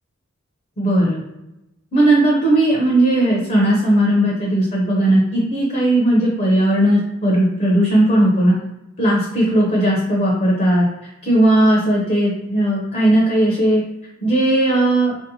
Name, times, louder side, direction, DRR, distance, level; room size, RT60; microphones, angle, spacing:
voice 1, 0.8-1.2 1.9-8.6 9.0-10.8 11.2-13.8 14.2-15.1, right 1 dB, 40° left, -4 dB, 0.6 m, -16 dB
2.6 x 2.0 x 2.7 m, 0.93 s
head